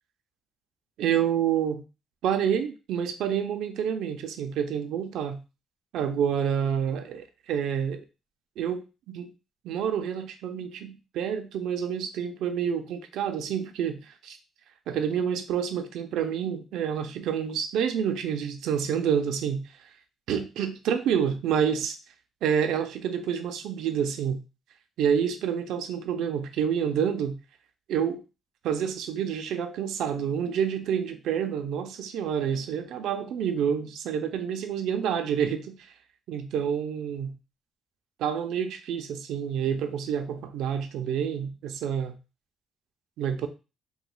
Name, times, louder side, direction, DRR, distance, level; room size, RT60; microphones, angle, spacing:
voice 1, 1.0-1.8 2.2-5.4 5.9-8.0 8.6-9.3 9.6-14.4 14.9-19.9 20.3-22.0 22.4-24.4 25.0-27.4 27.9-28.2 28.6-35.8 36.3-37.3 38.2-42.2 43.2-43.5, right 8 dB, 85° right, 7 dB, 0.4 m, -28 dB
4.2 x 2.3 x 2.3 m, 0.29 s
cardioid pair, 90°, 0 cm